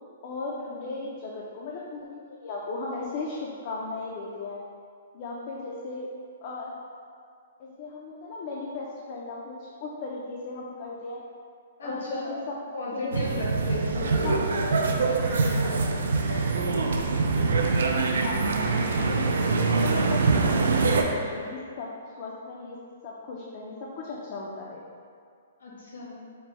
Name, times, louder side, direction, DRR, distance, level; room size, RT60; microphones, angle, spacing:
voice 1, 0.2-4.6 5.1-6.1 6.4-6.8 7.6-11.2 11.8-12.6 12.9-13.5 14.2-14.4 15.6-15.8 18.1-18.5 19.1-24.8, left 3 dB, 35° left, -3 dB, 0.3 m, -36 dB
voice 2, 11.8-12.4 12.7-17.1 25.6-26.2, left 1 dB, 85° left, -5 dB, 1.2 m, -37 dB
sound 1, 13.1-21.0, right 4 dB, 90° right, 0.4 m, -24 dB
Crow, 14.7-21.5, right 2 dB, 50° right, 1.0 m, -45 dB
4.2 x 2.0 x 4.1 m, 2.2 s
hypercardioid pair, 175°, 0 cm